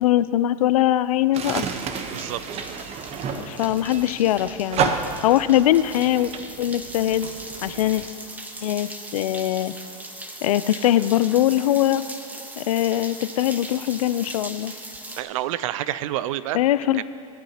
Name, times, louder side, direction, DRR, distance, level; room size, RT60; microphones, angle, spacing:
voice 1, 0.0-1.6 3.4-4.9 5.2-6.3 6.6-7.3 7.6-8.0 8.6-9.7 10.4-12.0 12.6-14.7 16.5-17.0, left 13 dB, 75° left, 15 dB, 0.5 m, -21 dB
sound 1, 1.3-8.1, right 6 dB, 35° right, 1.0 m, -31 dB
sound 2, 1.7-15.2, right 1 dB, 10° right, 1.1 m, -40 dB
voice 2, 2.1-2.6 15.2-17.0, right 13 dB, 65° right, 16 dB, 0.6 m, -29 dB
26.0 x 9.6 x 2.9 m, 2.4 s
hypercardioid pair, 105°, 18 cm